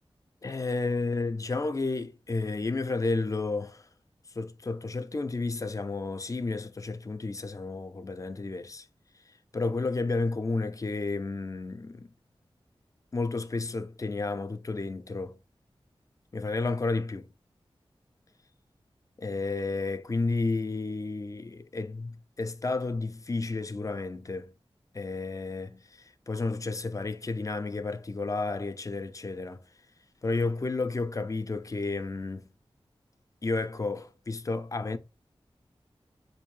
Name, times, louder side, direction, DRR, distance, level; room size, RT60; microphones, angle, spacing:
voice 1, 0.4-3.8 4.4-8.9 9.5-12.1 13.1-15.4 16.3-17.3 19.2-24.5 24.9-29.6 30.2-32.5 33.4-35.0, left 3 dB, 35° left, 0.3 m, -31 dB
3.4 x 2.6 x 3.1 m
wide cardioid pair, 75°, 10 cm